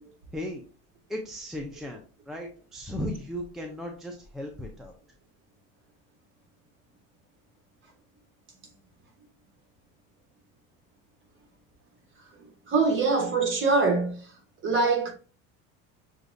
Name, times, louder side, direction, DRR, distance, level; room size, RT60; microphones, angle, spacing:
voice 1, 0.3-0.6 1.1-4.9, equal, ahead, 0.4 m, -36 dB
voice 2, 12.7-14.2 14.6-15.1, right 3 dB, 35° right, 1.4 m, -23 dB
6.5 x 2.4 x 2.6 m
cardioid pair, 125°, 36 cm